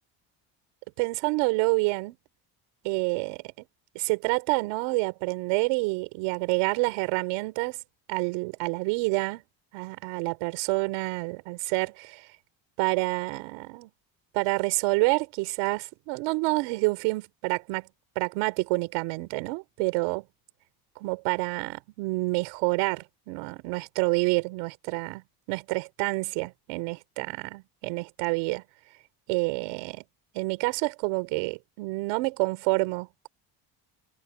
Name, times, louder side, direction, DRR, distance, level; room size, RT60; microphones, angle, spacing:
voice 1, 1.0-2.2 2.8-3.6 3.9-7.8 8.1-9.4 9.7-12.3 12.8-13.9 14.3-17.9 18.2-20.2 21.0-25.2 25.5-28.6 29.3-30.0 30.3-33.3, right 26 dB, 85° right, 4.5 m, -28 dB
supercardioid pair, 75°, 48 cm